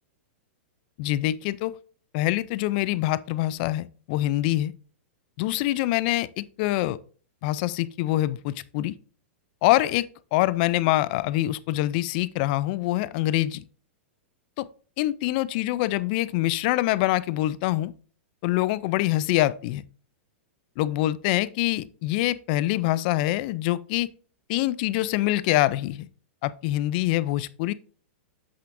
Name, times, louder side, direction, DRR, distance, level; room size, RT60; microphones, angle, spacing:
voice 1, 1.0-1.8 2.1-4.7 5.4-7.0 7.4-9.0 9.6-13.6 14.6-14.7 15.0-17.9 18.4-19.8 20.8-24.1 24.5-26.1 26.4-27.7, left 16 dB, 45° left, 0.4 m, -25 dB
7.7 x 6.9 x 2.6 m
hypercardioid pair, 145°, 7 cm